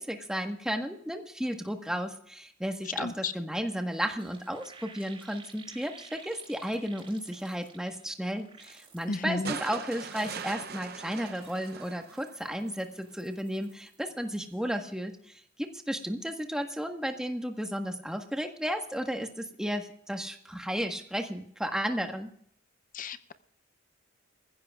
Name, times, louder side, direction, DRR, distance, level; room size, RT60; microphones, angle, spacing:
voice 1, 0.0-22.3, equal, 5° right, 4 dB, 1.4 m, -34 dB
voice 2, 3.0-3.3 9.1-9.6 22.9-23.3, left 3 dB, 40° left, 13 dB, 0.6 m, -33 dB
sound 1, 4.0-8.0 8.4-9.2 9.7-10.6 11.0-14.0 14.3-14.6, right 5 dB, 25° right, 5.3 m, -54 dB
sound 2, 9.4-12.7 14.1-14.2, right 6 dB, 50° right, 0.7 m, -41 dB
24.5 x 15.5 x 2.4 m, 0.64 s
head